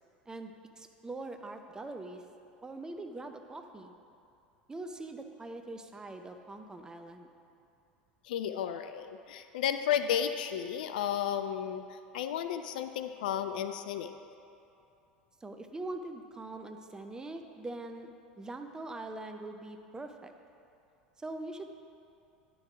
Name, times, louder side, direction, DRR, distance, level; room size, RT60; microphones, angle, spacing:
voice 1, 0.3-2.2 2.6-3.9 4.7-7.3 15.4-20.3 21.2-21.7, right 2 dB, 15° right, 6 dB, 0.6 m, -43 dB
voice 2, 8.2-11.8 12.1-14.1, left 9 dB, 65° left, 9 dB, 0.3 m, -33 dB
10.5 x 3.8 x 4.8 m, 2.7 s
figure-of-eight pair, 75°, 5 cm